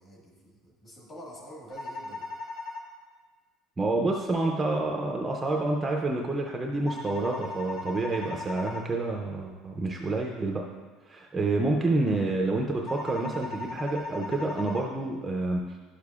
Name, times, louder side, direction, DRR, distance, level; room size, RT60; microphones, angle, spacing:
voice 1, 0.0-2.3, equal, 25° left, -3 dB, 1.6 m, -47 dB
sound 1, 1.7-2.9 6.9-8.9 12.9-14.9, left 3 dB, 65° left, 1.3 m, -38 dB
voice 2, 3.8-10.6 11.1-15.8, right 2 dB, 10° right, 0 dB, 0.4 m, -28 dB
11.5 x 6.6 x 2.4 m, 1.4 s
cardioid pair, 180°, 0 cm